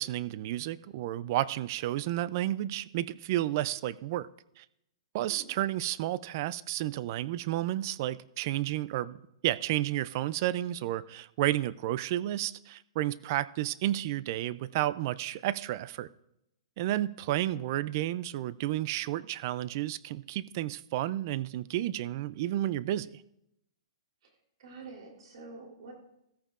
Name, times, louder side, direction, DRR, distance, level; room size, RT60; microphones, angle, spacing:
voice 1, 0.0-4.3 4.6-4.7 5.1-9.2 9.4-16.1 16.8-23.2, right 14 dB, 35° right, 0.3 m, -31 dB
voice 2, 17.3-17.6 24.2-24.3 24.6-25.9, right 3 dB, 60° right, 3.3 m, -47 dB
14.0 x 14.0 x 2.5 m
hypercardioid pair, 165°, 3 cm